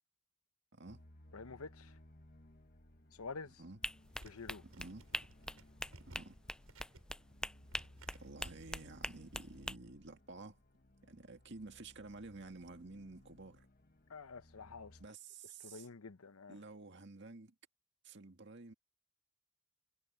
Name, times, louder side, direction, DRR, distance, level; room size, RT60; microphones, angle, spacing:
sound 1, 0.9-15.1, left 1 dB, 45° left, 1.6 m, -62 dB
voice 1, 1.3-1.9 3.1-3.6 4.2-4.6 14.1-15.0 15.6-16.6, left 4 dB, 85° left, 0.9 m, -48 dB
voice 2, 3.5-3.8 4.6-5.1 6.0-6.4 8.1-10.6 11.1-13.7 15.0-15.9 16.5-17.5 18.0-18.7, right 3 dB, 55° right, 2.0 m, -51 dB
sound 2, 3.8-9.8, left 1 dB, 5° left, 0.3 m, -43 dB
sound 3, 4.0-8.7, right 1 dB, 80° right, 7.8 m, -60 dB
head